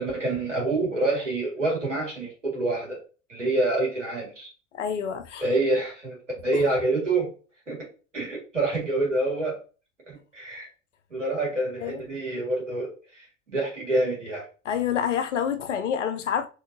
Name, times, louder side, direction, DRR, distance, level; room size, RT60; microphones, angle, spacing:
voice 1, 0.0-3.0 3.3-4.5 5.4-6.2 6.4-7.3 7.7-7.9 8.1-9.6 10.1-10.7 11.1-14.5, right 2 dB, 90° right, 1.9 m, -27 dB
voice 2, 4.7-5.4 6.5-6.6 11.8-12.0 14.6-16.5, left 8 dB, 80° left, 0.6 m, -27 dB
4.3 x 3.5 x 2.7 m
figure-of-eight pair, 70°, 36 cm